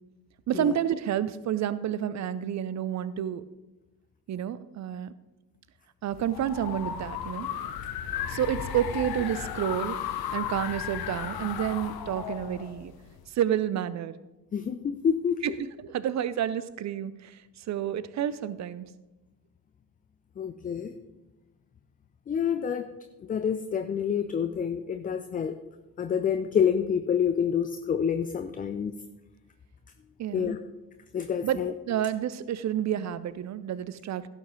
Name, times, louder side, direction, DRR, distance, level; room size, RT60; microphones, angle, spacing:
voice 1, 0.5-3.4 4.3-5.1 6.0-7.5 8.3-10.0 10.3-12.9 13.3-14.1 15.4-17.4 17.7-18.9 30.2-30.6 31.4-34.3, right 10 dB, 35° right, 17 dB, 0.6 m, -30 dB
sound 1, 6.1-13.3, left 9 dB, 45° left, 1.0 m, -35 dB
voice 2, 14.5-15.4 20.4-20.9 22.3-22.9 23.3-25.6 26.0-28.9 30.3-30.6 31.1-31.7, left 7 dB, 20° left, 9 dB, 0.4 m, -27 dB
16.0 x 5.8 x 3.8 m, 1.0 s
figure-of-eight pair, 40°, 50 cm